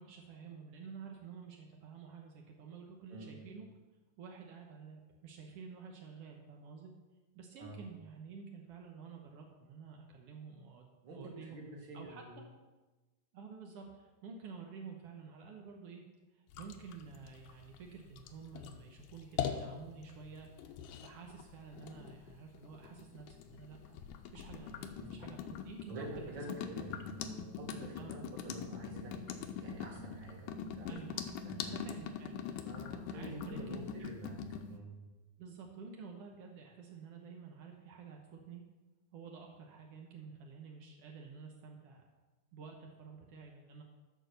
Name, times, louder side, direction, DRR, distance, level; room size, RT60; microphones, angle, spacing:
voice 1, 0.0-3.7 4.2-6.9 7.3-11.6 11.9-12.4 13.3-16.0 16.3-24.0 24.3-27.0 28.0-28.1 28.5-28.7 30.9-31.3 31.6-32.6 33.1-34.1 35.4-38.6 39.1-42.1 42.5-43.8, right 5 dB, 75° right, 1 dB, 1.4 m, -50 dB
voice 2, 3.1-3.4 7.5-7.8 11.0-12.4 25.0-25.1 25.9-31.0 31.4-31.8 32.6-34.9, right 2 dB, 40° right, -1 dB, 2.0 m, -48 dB
sound 1, 16.5-34.7, left 8 dB, 80° left, 2.2 m, -43 dB
12.5 x 4.7 x 6.7 m, 1.2 s
omnidirectional pair, 3.9 m